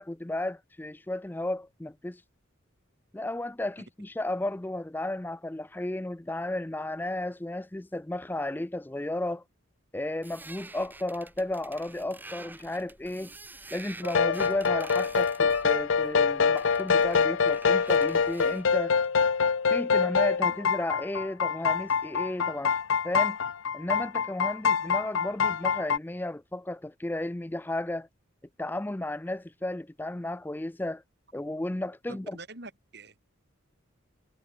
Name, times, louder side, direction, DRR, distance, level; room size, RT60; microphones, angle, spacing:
voice 1, 0.0-2.2 3.1-9.4 9.9-13.3 13.7-18.9 19.7-22.8 23.0-23.4 23.7-28.1 28.6-31.0 31.3-32.4, left 1 dB, 10° left, 0.4 m, -33 dB
sound 1, 10.2-18.7, right 2 dB, 10° right, 1.5 m, -48 dB
sound 2, 14.0-26.0, left 6 dB, 75° left, 0.6 m, -25 dB
voice 2, 32.1-33.3, right 2 dB, 55° right, 6.3 m, -45 dB
head